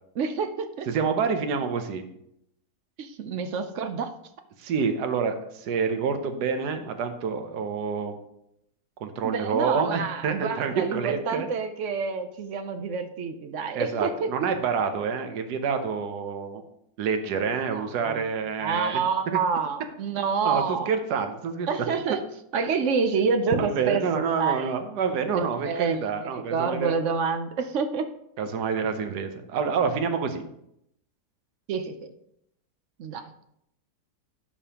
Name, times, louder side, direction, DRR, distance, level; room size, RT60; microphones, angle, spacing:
voice 1, 0.2-0.9 3.0-4.1 9.2-14.3 17.7-18.2 18.6-20.9 21.7-22.2 22.5-24.7 25.3-28.1 31.7-32.1 33.0-33.3, right 5 dB, 60° right, 8 dB, 0.8 m, -28 dB
voice 2, 0.9-2.0 4.6-8.2 9.0-11.5 13.7-16.6 17.0-19.0 20.4-21.7 23.5-26.9 28.4-30.4, right 5 dB, 75° right, 7 dB, 1.4 m, -27 dB
12.0 x 5.2 x 2.9 m, 0.76 s
omnidirectional pair, 1.8 m